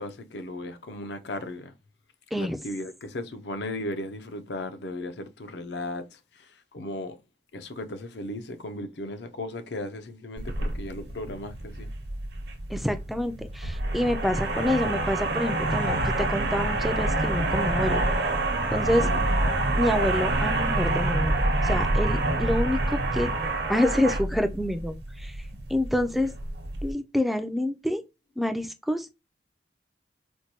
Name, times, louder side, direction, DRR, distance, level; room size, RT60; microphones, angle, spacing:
voice 1, 0.0-1.7 2.3-7.2 7.5-11.9 19.0-19.2, left 1 dB, 75° left, 0.6 m, -36 dB
sound 1, 10.4-26.9, right 2 dB, 65° right, 0.9 m, -27 dB
voice 2, 12.7-18.0 18.7-19.0 19.8-21.3 21.6-23.3 23.7-25.3 25.7-26.3 26.8-28.0 28.4-29.1, left 1 dB, ahead, 0.3 m, -27 dB
4.4 x 2.2 x 2.8 m
head